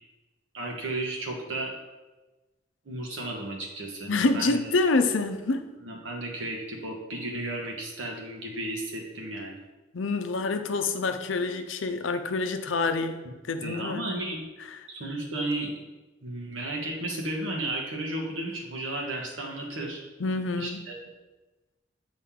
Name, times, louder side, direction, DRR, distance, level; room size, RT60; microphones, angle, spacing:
voice 1, 0.5-1.7 2.8-4.7 5.8-9.6 13.6-14.4 14.9-15.9 16.2-20.0 20.6-20.9, right 1 dB, 85° right, 0 dB, 1.4 m, -34 dB
voice 2, 4.1-5.7 9.9-13.2 13.5-14.1 14.7-14.8 20.2-20.8, left 3 dB, 85° left, 7 dB, 0.6 m, -27 dB
8.4 x 3.9 x 3.7 m, 1.2 s
head